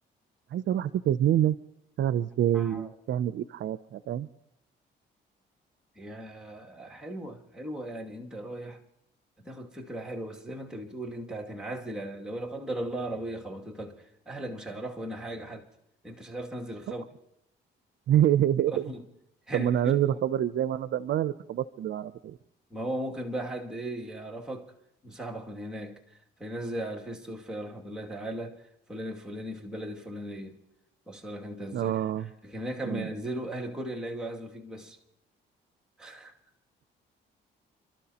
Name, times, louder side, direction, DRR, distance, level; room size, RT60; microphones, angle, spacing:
voice 1, 0.5-1.6 2.0-4.3 18.1-18.9 19.5-22.4 31.7-32.3 32.8-33.1, right 11 dB, 65° right, 0.5 m, -26 dB
voice 2, 2.5-2.9 6.0-8.8 9.4-15.7 16.0-17.0 18.7-19.1 19.5-20.2 22.7-24.7 25.0-30.6 31.1-31.9 32.2-35.0 36.0-36.4, right 1 dB, 5° right, 2.3 m, -37 dB
29.5 x 13.0 x 2.9 m
cardioid pair, 90°, 20 cm